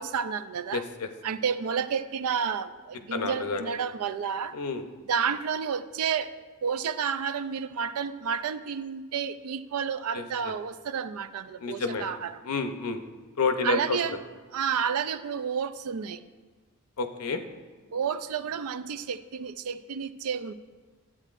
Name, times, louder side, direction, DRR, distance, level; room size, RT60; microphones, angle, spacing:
voice 1, 0.0-0.8 1.2-4.6 5.1-6.3 6.6-12.3 13.6-14.2 14.5-16.2 17.9-20.5, right 7 dB, 75° right, 0.4 m, -30 dB
voice 2, 0.7-1.1 3.1-3.7 4.5-4.8 10.1-10.5 11.6-12.1 12.4-13.0 13.4-14.2 17.0-17.4, left 4 dB, 90° left, 0.7 m, -30 dB
12.5 x 8.7 x 2.5 m
head